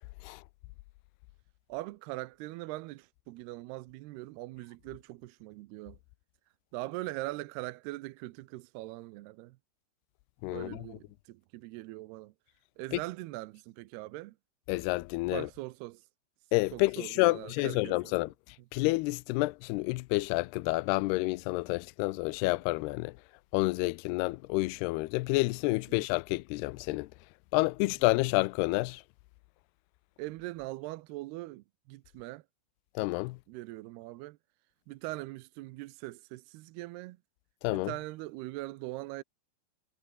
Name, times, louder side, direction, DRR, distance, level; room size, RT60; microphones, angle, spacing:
voice 1, 1.7-6.0 6.7-9.6 10.5-12.3 12.8-14.4 15.3-16.0 16.7-18.1 25.9-26.1 30.2-32.4 33.5-34.4 34.9-37.2 37.7-39.2, right 19 dB, 80° right, 2.6 m, -41 dB
voice 2, 10.4-10.8 12.9-13.0 14.7-15.5 16.5-23.2 23.5-27.1 27.5-29.0 33.0-33.4 37.6-37.9, left 22 dB, 85° left, 2.5 m, -29 dB
omnidirectional pair, 4.9 m